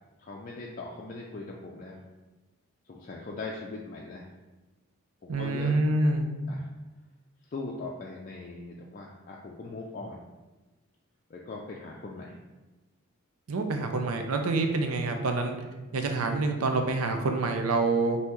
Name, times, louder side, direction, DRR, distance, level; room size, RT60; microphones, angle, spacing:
voice 1, 0.2-2.0 2.9-4.3 5.2-5.7 6.5-6.7 7.5-10.2 11.3-12.4, left 3 dB, 40° left, -2 dB, 0.4 m, -40 dB
voice 2, 5.3-6.3 13.5-15.6 15.9-18.2, right 3 dB, 90° right, 5 dB, 0.5 m, -27 dB
5.4 x 2.7 x 3.0 m, 1.2 s
head